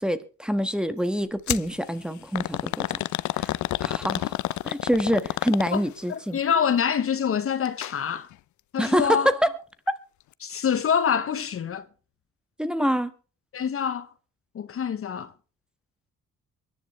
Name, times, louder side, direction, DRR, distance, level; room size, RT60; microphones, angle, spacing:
voice 1, 0.0-2.9 3.3-3.5 3.8-4.3 4.6-6.4 8.8-9.5 12.6-13.1, equal, 5° right, 1.5 m, -25 dB
sound 1, 1.5-1.7 2.3-6.0 7.6-8.0 8.3-8.4 9.3-9.4, left 15 dB, 70° left, 0.6 m, -29 dB
voice 2, 6.1-8.3 8.7-9.3 10.4-11.9 13.5-14.1 14.5-15.3, left 7 dB, 45° left, 1.0 m, -26 dB
23.5 x 10.5 x 3.2 m
cardioid pair, 90°, 30 cm